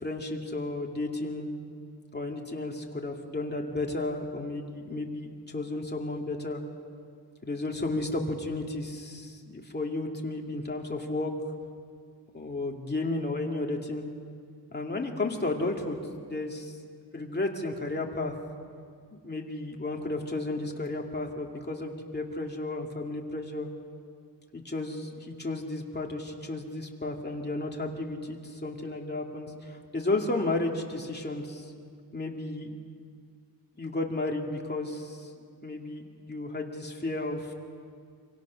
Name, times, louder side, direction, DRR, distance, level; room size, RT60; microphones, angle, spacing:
voice 1, 0.0-1.5 2.1-6.6 7.4-11.3 12.3-14.1 14.7-16.8 17.1-18.3 19.1-23.7 24.5-31.7 32.1-32.7 33.8-35.3 35.6-37.5, left 2 dB, 25° left, 0 dB, 2.4 m, -33 dB
26.5 x 26.0 x 6.4 m, 2.2 s
wide cardioid pair, 155°, 41 cm